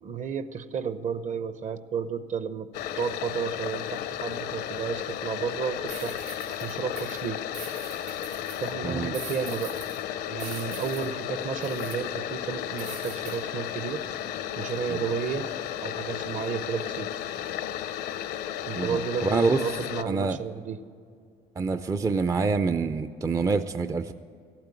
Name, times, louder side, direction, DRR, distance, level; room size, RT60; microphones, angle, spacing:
voice 1, 0.0-2.7 3.0-6.1 6.6-7.4 8.6-9.8 10.3-14.0 14.6-15.5 15.8-17.1 18.7-20.8, right 7 dB, 45° right, 12 dB, 0.7 m, -32 dB
sound 1, 2.7-20.0, left 11 dB, 80° left, 0.7 m, -34 dB
sound 2, 5.9-8.7 9.1-10.0 10.4-11.1 11.6-12.0 12.8-13.4, right 7 dB, 70° right, 4.7 m, -43 dB
voice 2, 18.7-19.6 20.0-20.4 21.6-24.1, right 4 dB, 20° right, 11 dB, 0.4 m, -26 dB
15.0 x 8.8 x 8.3 m, 2.3 s
cardioid pair, 110°, 17 cm